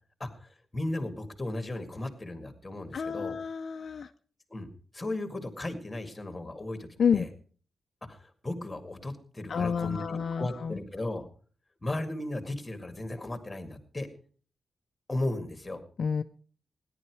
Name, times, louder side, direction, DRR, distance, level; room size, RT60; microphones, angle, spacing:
voice 1, 0.2-3.4 4.5-7.3 8.0-11.3 11.8-14.1 15.1-15.8, left 1 dB, 15° left, 7 dB, 2.1 m, -36 dB
voice 2, 2.9-4.1 7.0-7.3 9.5-10.8 16.0-16.2, left 6 dB, 55° left, 7 dB, 0.6 m, -29 dB
17.0 x 11.0 x 4.7 m, 0.42 s
wide cardioid pair, 135°, 0 cm